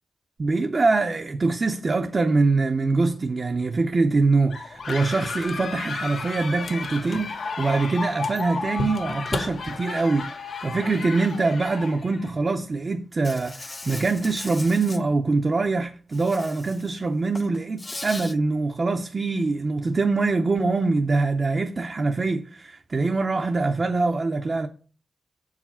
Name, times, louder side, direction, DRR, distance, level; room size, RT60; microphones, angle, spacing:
voice 1, 0.4-24.7, right 3 dB, 40° right, 0.6 m, -24 dB
sound 1, 4.5-12.3, left 4 dB, 90° left, 1.4 m, -34 dB
sound 2, 4.7-10.2, left 2 dB, 50° left, 1.0 m, -37 dB
Insect, 13.2-15.0 16.1-16.9 17.3-18.3, left 2 dB, 25° left, 0.4 m, -39 dB
6.9 x 4.8 x 5.6 m
wide cardioid pair, 100°, 0 cm